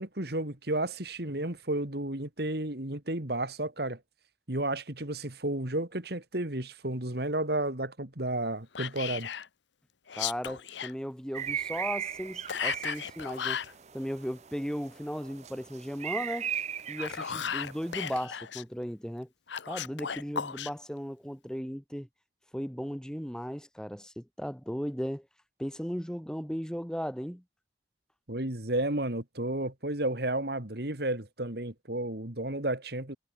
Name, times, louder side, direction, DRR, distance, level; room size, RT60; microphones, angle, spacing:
voice 1, 0.0-4.0 4.5-9.3 28.3-33.2, right 1 dB, 55° right, 2.6 m, -32 dB
Whispering, 8.7-9.5 10.1-10.9 12.5-13.7 16.8-18.6 19.5-20.7, left 8 dB, 75° left, 0.9 m, -35 dB
voice 2, 10.2-13.6 13.9-16.5 16.9-19.3 19.7-22.1 22.5-25.3 25.6-27.4, equal, 5° left, 3.1 m, -36 dB
sound 1, 11.3-18.2, right 9 dB, 35° right, 0.7 m, -38 dB
head